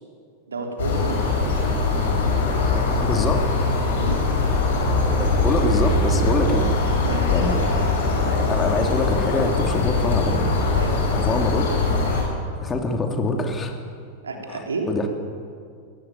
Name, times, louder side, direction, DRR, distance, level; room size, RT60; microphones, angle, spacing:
voice 1, 0.5-1.6 4.0-4.2 7.0-7.5 10.7-11.0 14.2-14.9, right 3 dB, 70° right, 2 dB, 3.6 m, -30 dB
sound 1, 0.8-12.2, left 3 dB, 60° left, 6.7 m, -21 dB
voice 2, 3.0-3.4 5.2-6.7 7.3-7.6 8.2-10.4 11.3-11.6 12.6-13.7 14.9-15.1, left 2 dB, 20° left, 4 dB, 2.9 m, -24 dB
23.0 x 16.5 x 9.3 m, 2.2 s
figure-of-eight pair, 90°, 0 cm